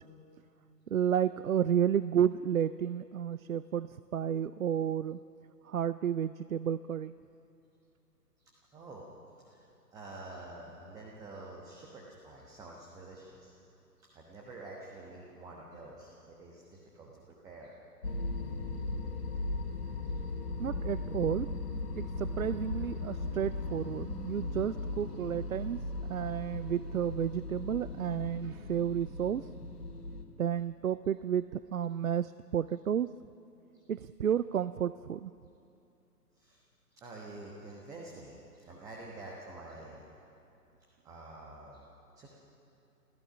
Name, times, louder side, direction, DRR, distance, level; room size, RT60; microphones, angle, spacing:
voice 1, 0.9-5.2 5.7-7.1 20.6-21.5 21.9-25.8 26.1-29.5 30.4-33.1 33.9-35.3, right 9 dB, 60° right, 16 dB, 0.5 m, -31 dB
voice 2, 8.7-9.0 9.4-9.7 9.9-13.5 14.0-17.1 17.4-17.8 20.0-20.1 33.7-33.8 36.4-36.6 36.9-40.0 41.0-41.9 42.2-42.3, right 2 dB, 5° right, -3 dB, 1.1 m, -48 dB
sound 1, 18.0-30.2, left 2 dB, 70° left, 2.5 m, -37 dB
29.0 x 15.0 x 6.1 m, 2.7 s
figure-of-eight pair, 130°, 48 cm